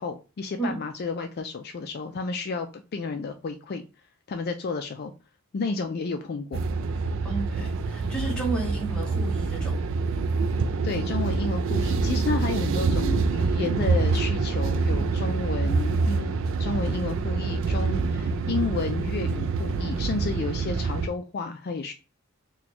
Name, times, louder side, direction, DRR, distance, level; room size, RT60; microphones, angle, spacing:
voice 1, 0.0-3.8 4.3-5.1 5.5-6.6 10.8-16.3 16.6-21.9, left 4 dB, 45° left, 0.4 m, -31 dB
sound 1, 6.5-21.1, right 4 dB, 65° right, 0.3 m, -26 dB
voice 2, 7.2-9.8, right 3 dB, 5° left, 1.1 m, -32 dB
2.9 x 2.2 x 4.1 m
head